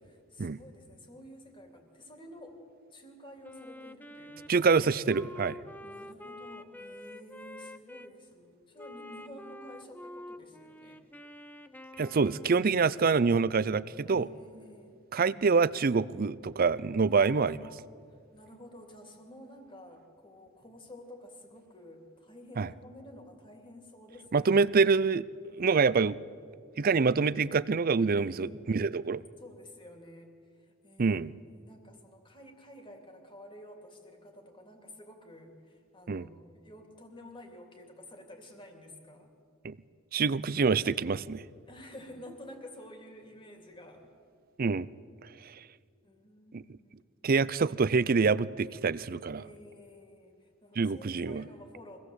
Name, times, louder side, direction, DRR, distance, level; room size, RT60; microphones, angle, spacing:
voice 1, 0.0-2.6 2.9-4.7 5.8-11.0 14.1-15.0 17.1-17.9 18.3-24.5 28.2-28.7 29.4-31.2 31.5-39.3 41.7-44.1 46.0-47.0 49.4-52.0, left 1 dB, 25° left, 3 dB, 2.8 m, -51 dB
Wind instrument woodwind instrument, 3.4-8.1 8.8-12.7, left 1 dB, 10° left, 0.6 m, -47 dB
voice 2, 4.5-5.6 12.0-14.3 15.1-17.6 22.6-22.7 24.3-25.2 25.6-26.2 26.8-29.2 31.0-31.3 36.1-36.3 39.6-39.8 40.1-41.4 44.6-44.9 45.4-45.6 46.5-46.6 47.2-49.4 50.8-51.4, right 4 dB, 45° right, 18 dB, 0.5 m, -26 dB
24.0 x 17.0 x 8.0 m, 2.2 s
head